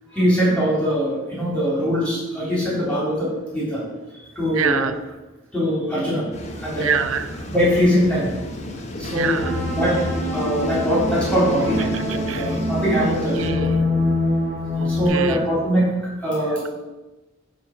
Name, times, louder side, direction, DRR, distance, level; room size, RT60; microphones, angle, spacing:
voice 1, 0.1-3.8 4.3-4.9 5.5-6.2 6.6-6.9 7.5-8.3 9.0-9.4 9.7-10.0 10.3-13.6 14.8-15.9 16.2-16.7, equal, 5° left, -7 dB, 3.2 m, -22 dB
voice 2, 4.5-4.9 6.8-7.3 9.1-9.5 11.9-12.6 13.0-13.7 14.7-15.4, right 6 dB, 80° right, 10 dB, 0.7 m, -26 dB
sound 1, 6.3-13.5, equal, 35° left, 1.0 m, -32 dB
sound 2, 9.4-15.1, left 1 dB, 30° right, 1.9 m, -24 dB
10.0 x 3.8 x 6.5 m, 1.1 s
head